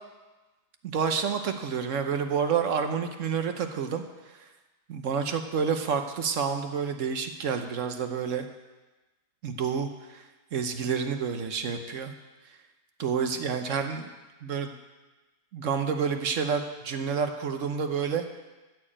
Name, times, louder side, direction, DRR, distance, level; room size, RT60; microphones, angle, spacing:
voice 1, 0.8-4.0 4.9-8.5 9.4-10.2 10.5-12.1 13.0-14.1 14.4-14.7 15.5-18.2, right 6 dB, 55° right, 6 dB, 1.1 m, -29 dB
13.5 x 4.7 x 8.6 m, 1.1 s
omnidirectional pair, 1.8 m